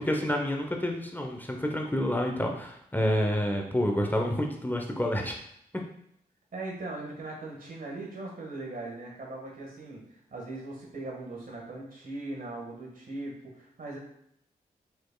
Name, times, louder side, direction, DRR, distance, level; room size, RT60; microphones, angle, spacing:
voice 1, 0.0-5.4, equal, 10° left, 2 dB, 0.8 m, -28 dB
voice 2, 6.5-14.0, right 2 dB, 60° right, -2 dB, 1.7 m, -39 dB
4.8 x 4.2 x 2.3 m, 0.72 s
cardioid pair, 45°, 16 cm